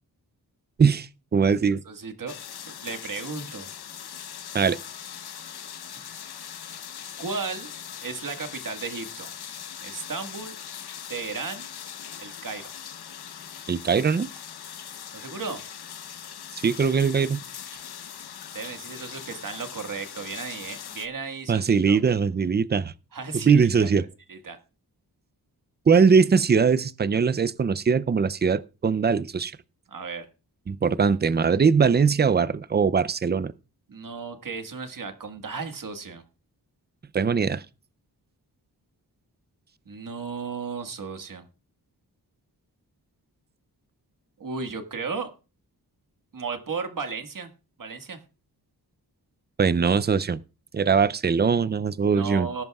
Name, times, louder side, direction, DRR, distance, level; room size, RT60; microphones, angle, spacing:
voice 1, 0.8-1.8 4.5-4.8 13.7-14.3 16.5-17.4 21.5-22.9 23.4-24.0 25.9-29.5 30.7-33.5 37.1-37.6 49.6-50.4 50.7-52.5, right 5 dB, 25° right, 0.5 m, -21 dB
voice 2, 1.8-2.3 2.6-3.7 6.0-6.2 7.2-7.7 8.0-9.3 9.8-10.5 11.1-11.7 12.2-12.7 15.1-15.6 18.5-22.0 23.1-23.6 24.3-24.6 29.9-30.3 33.9-36.2 39.8-41.5 44.4-45.3 46.3-47.5 47.8-48.2 52.1-52.6, right 5 dB, 55° right, 1.7 m, -34 dB
sound 1, 2.3-21.1, left 9 dB, 75° left, 0.9 m, -40 dB
19.5 x 10.5 x 2.3 m
wide cardioid pair, 90°, 39 cm